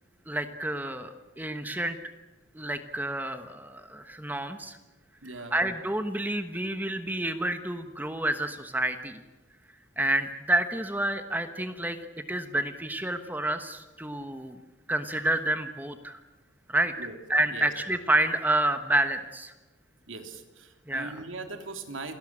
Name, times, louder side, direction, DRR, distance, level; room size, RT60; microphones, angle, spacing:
voice 1, 0.3-2.0 2.5-4.8 5.5-9.2 10.0-12.0 12.3-14.6 14.9-16.2 16.7-16.9 17.3-19.5 20.9-21.1, right 1 dB, 10° right, 8 dB, 1.2 m, -29 dB
voice 2, 5.2-5.6 17.0-17.2 17.5-17.7 20.1-22.1, right 3 dB, 85° right, 5 dB, 3.2 m, -40 dB
28.5 x 18.5 x 8.8 m, 1.2 s
head